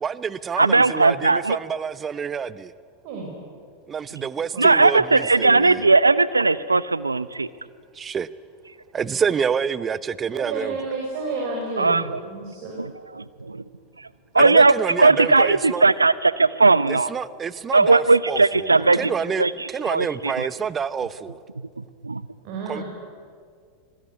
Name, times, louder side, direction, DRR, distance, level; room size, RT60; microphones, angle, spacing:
voice 1, 0.0-2.7 3.9-5.8 7.9-8.3 8.9-10.8 14.3-15.8 16.9-21.4 22.7-22.8, right 6 dB, 25° right, 17 dB, 0.9 m, -28 dB
voice 2, 0.6-1.6 4.6-7.5 11.8-12.2 12.8-12.9 14.3-17.1 17.7-19.1 19.4-20.5 21.8-22.2, right 3 dB, 90° right, 17 dB, 0.8 m, -18 dB
voice 3, 10.3-12.8 18.8-19.1 22.4-22.8, right 3 dB, 50° right, -1 dB, 6.5 m, -31 dB
26.0 x 21.5 x 9.7 m, 2.1 s
figure-of-eight pair, 85°, 0 cm